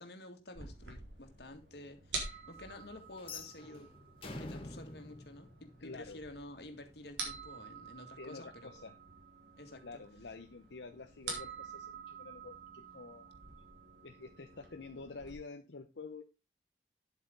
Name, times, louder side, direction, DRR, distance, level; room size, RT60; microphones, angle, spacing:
voice 1, 0.0-3.9 4.2-8.8 9.6-10.0, left 1 dB, 65° left, 2.0 m, -51 dB
sound 1, 0.5-15.3, right 4 dB, 85° right, 4.0 m, -48 dB
sound 2, 3.2-6.3, left 2 dB, 30° left, 2.0 m, -47 dB
voice 2, 5.8-6.2 8.2-9.0 9.8-13.4 14.0-16.2, left 3 dB, 90° left, 0.8 m, -48 dB
10.0 x 8.0 x 3.8 m
head